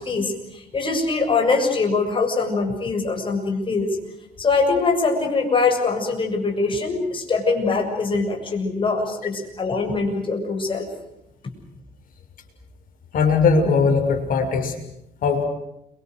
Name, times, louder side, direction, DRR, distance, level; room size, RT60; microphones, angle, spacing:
voice 1, 0.0-4.0 4.4-10.9, left 4 dB, 30° left, 3 dB, 7.6 m, -23 dB
voice 2, 13.1-14.7 15.2-15.4, left 5 dB, 55° left, 5 dB, 6.5 m, -19 dB
30.0 x 25.0 x 6.5 m, 0.84 s
cardioid pair, 110°, 17 cm